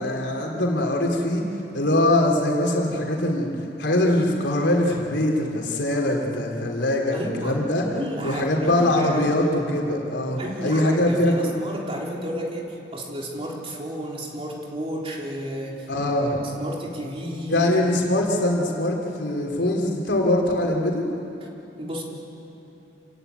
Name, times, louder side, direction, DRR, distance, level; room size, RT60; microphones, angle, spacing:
voice 1, 0.0-1.4 1.7-3.5 3.8-7.8 8.2-11.5 15.9-16.4 17.5-21.0, left 1 dB, 80° left, 0 dB, 3.3 m, -22 dB
voice 2, 7.1-7.6 7.9-9.5 10.4-15.9 16.2-17.7 18.1-18.2 21.8-22.0, equal, 30° right, -2 dB, 3.4 m, -32 dB
27.0 x 16.5 x 9.3 m, 2.9 s
head